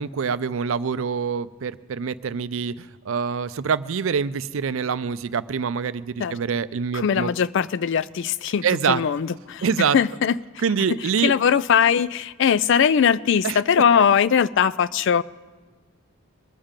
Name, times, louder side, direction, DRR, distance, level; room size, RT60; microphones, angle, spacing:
voice 1, 0.0-7.3 8.6-9.0 9.6-10.0 10.6-11.3 13.4-13.6, right 6 dB, 65° right, 15 dB, 0.4 m, -25 dB
voice 2, 6.9-9.7 9.9-10.4 11.2-15.2, left 7 dB, 60° left, 18 dB, 0.3 m, -20 dB
22.0 x 7.3 x 5.1 m, 1.4 s
head